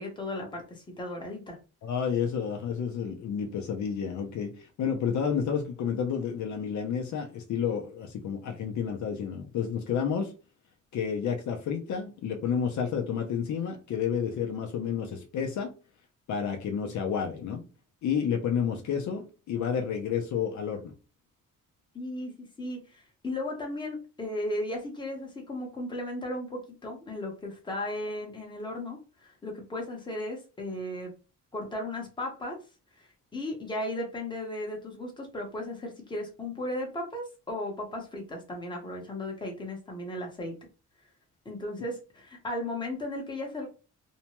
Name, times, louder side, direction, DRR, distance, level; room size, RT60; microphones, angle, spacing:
voice 1, 0.0-1.6 21.9-22.3 22.6-31.1 31.5-32.6 33.0-33.1 33.3-40.5 41.4-43.7, left 1 dB, 15° left, 0.9 m, -35 dB
voice 2, 1.8-10.3 10.9-15.7 16.3-17.7 18.0-20.9, left 7 dB, 65° left, 0.6 m, -30 dB
2.6 x 2.2 x 2.9 m
cardioid pair, 155°, 31 cm